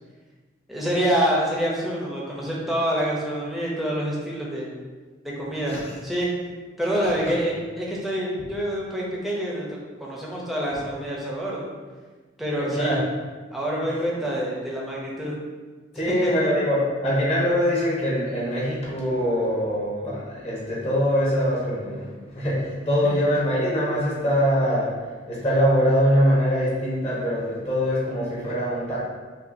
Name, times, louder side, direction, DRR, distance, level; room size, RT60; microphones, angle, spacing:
voice 1, 0.7-4.7 5.2-6.3 6.8-11.7 12.4-13.0 13.5-15.3 16.2-16.3, equal, ahead, -5 dB, 0.7 m, -26 dB
voice 2, 12.6-13.0 16.0-24.9 25.2-29.0, equal, 35° left, -6 dB, 1.1 m, -23 dB
5.4 x 2.4 x 2.7 m, 1.4 s
head